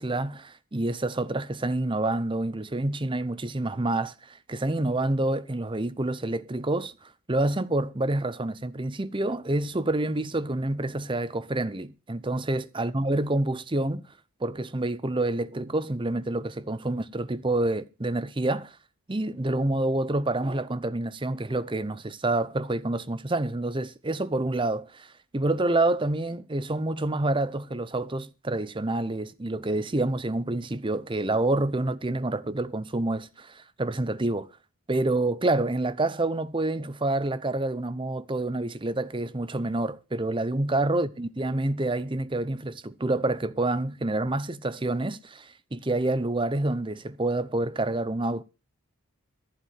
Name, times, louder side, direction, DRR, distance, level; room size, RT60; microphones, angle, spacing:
voice 1, 0.0-14.0 14.4-18.8 19.1-34.5 34.9-48.4, right 2 dB, 20° right, 0.7 m, -28 dB
14.5 x 4.9 x 9.1 m
head